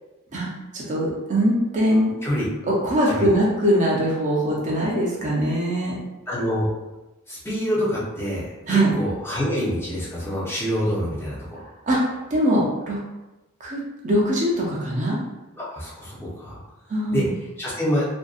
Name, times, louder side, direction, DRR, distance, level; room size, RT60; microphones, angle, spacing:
voice 1, 0.7-2.1 2.7-6.0 8.7-8.9 11.9-13.0 13.6-15.2 16.9-17.3, equal, 35° right, -4 dB, 0.5 m, -22 dB
voice 2, 6.3-6.7 7.3-11.6 15.6-16.6 17.1-17.2 17.6-18.0, equal, 10° left, -7 dB, 0.6 m, -26 dB
2.5 x 2.1 x 2.3 m, 1.0 s
head